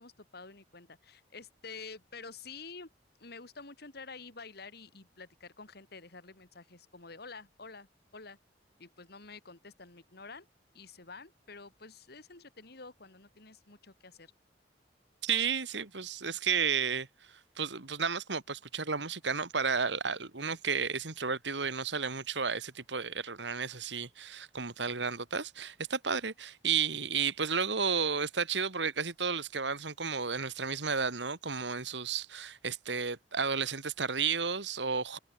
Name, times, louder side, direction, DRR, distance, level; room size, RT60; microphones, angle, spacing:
voice 1, 0.0-2.9 3.2-7.9 8.1-8.4 8.8-10.5 10.7-14.3, left 4 dB, 65° left, 3.1 m, -49 dB
voice 2, 15.2-35.2, right 6 dB, 85° right, 2.3 m, -32 dB
head